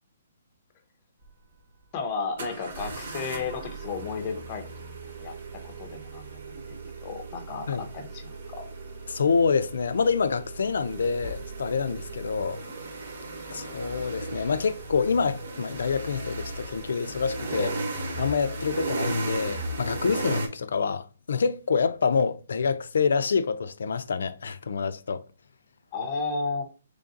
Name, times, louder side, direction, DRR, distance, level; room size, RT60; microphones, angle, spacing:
sound 1, 1.2-1.3 2.4-20.5, right 2 dB, 50° right, 1.0 m, -36 dB
voice 1, 1.9-4.6 5.2-5.3 5.6-8.7 25.9-26.6, left 4 dB, 20° left, 0.6 m, -33 dB
voice 2, 9.1-12.6 13.5-17.7 18.2-25.2, left 5 dB, 70° left, 0.4 m, -27 dB
3.8 x 3.3 x 2.4 m
hypercardioid pair, 175°, 0 cm